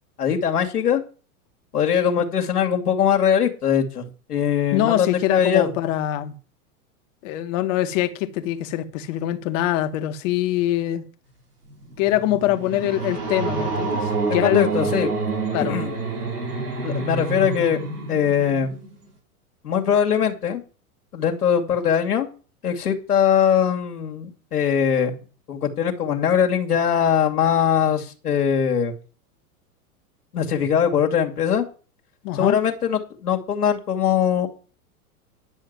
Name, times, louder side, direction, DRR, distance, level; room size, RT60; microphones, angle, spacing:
voice 1, 0.2-1.0 1.7-5.7 14.3-15.1 15.6-15.9 16.8-17.8 18.1-18.8 19.6-20.6 21.1-22.3 22.6-28.9 30.3-31.6 32.3-34.5, left 8 dB, 85° left, 2.4 m, -21 dB
voice 2, 4.7-6.4 7.2-11.0 12.0-14.8 15.5-15.8 32.2-32.6, left 13 dB, 55° left, 2.0 m, -23 dB
sound 1, 11.7-19.1, right 3 dB, 85° right, 4.5 m, -28 dB
10.5 x 6.5 x 7.9 m
hypercardioid pair, 105°, 45 cm